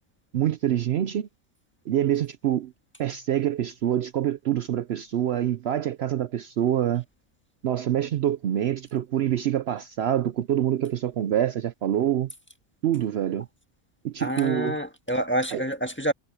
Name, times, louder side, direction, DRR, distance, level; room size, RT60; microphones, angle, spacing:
voice 1, 0.3-1.3 1.9-2.7 3.0-7.0 7.6-12.3 12.8-13.5 14.0-14.8 15.5-15.6, right 11 dB, 65° right, 0.8 m, -26 dB
voice 2, 14.2-16.1, equal, 10° left, 1.5 m, -27 dB
omnidirectional pair, 1.3 m